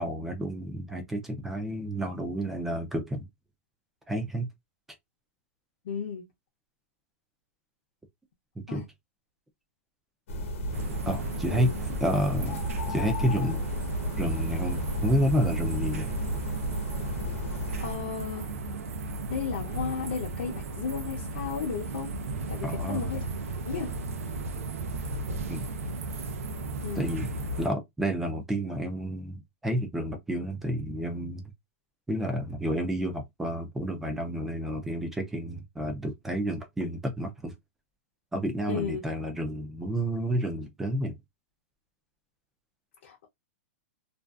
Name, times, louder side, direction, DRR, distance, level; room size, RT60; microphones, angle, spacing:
voice 1, 0.0-3.3 4.1-4.5 8.6-8.8 11.1-11.7 12.0-12.6 12.9-13.6 14.2-16.1 22.6-23.2 25.5-25.7 27.0-31.4 32.1-37.5 38.3-41.2, equal, 5° right, 0.3 m, -30 dB
voice 2, 5.8-6.2 8.7-8.8 11.5-11.7 17.8-18.5 19.3-22.1 22.5-23.3 23.6-23.9 26.8-27.0 38.7-39.0 43.0-43.3, left 6 dB, 55° left, 0.6 m, -34 dB
sound 1, 10.3-18.0, equal, 75° left, 0.9 m, -33 dB
sound 2, 10.7-27.7, right 2 dB, 85° right, 0.6 m, -35 dB
2.5 x 2.3 x 2.3 m
supercardioid pair, 180°, 7 cm